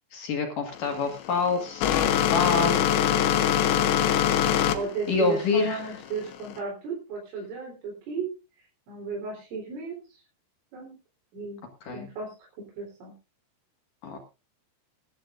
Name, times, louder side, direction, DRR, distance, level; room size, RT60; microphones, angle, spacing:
voice 1, 0.1-2.8 5.1-5.8 11.9-12.1 14.0-14.2, left 4 dB, 55° left, 3 dB, 2.7 m, -27 dB
sound 1, 0.7-6.6, left 10 dB, 75° left, 3.3 m, -24 dB
voice 2, 4.7-8.3 8.9-10.0 10.7-11.0 11.3-11.6 11.9-12.4 12.8-13.1, right 4 dB, 85° right, -2 dB, 6.4 m, -34 dB
22.0 x 11.5 x 2.6 m, 0.29 s
omnidirectional pair, 5.5 m